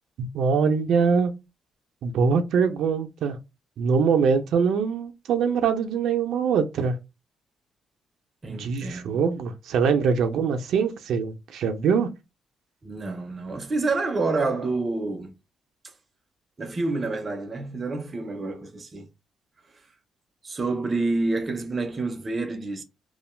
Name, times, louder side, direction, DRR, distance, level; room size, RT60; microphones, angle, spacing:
voice 1, 0.2-1.3 2.0-3.4 3.8-7.0 8.5-12.1, right 6 dB, 85° right, 0.4 m, -23 dB
voice 2, 8.4-9.2 12.8-15.3 16.6-19.1 20.4-22.8, right 3 dB, 30° right, 0.5 m, -28 dB
2.4 x 2.1 x 3.1 m
cardioid pair, 135°, 0 cm